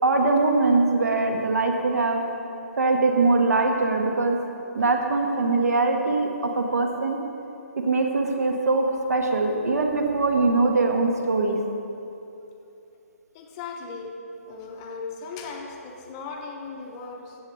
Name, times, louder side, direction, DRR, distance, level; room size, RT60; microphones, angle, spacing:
voice 1, 0.0-2.2 2.8-4.4 4.7-7.2 7.8-11.6, right 3 dB, 75° right, 3 dB, 1.5 m, -22 dB
voice 2, 13.3-14.1 14.5-17.4, left 4 dB, 15° left, 2 dB, 0.6 m, -37 dB
15.0 x 7.5 x 3.2 m, 2.8 s
hypercardioid pair, 170°, 8 cm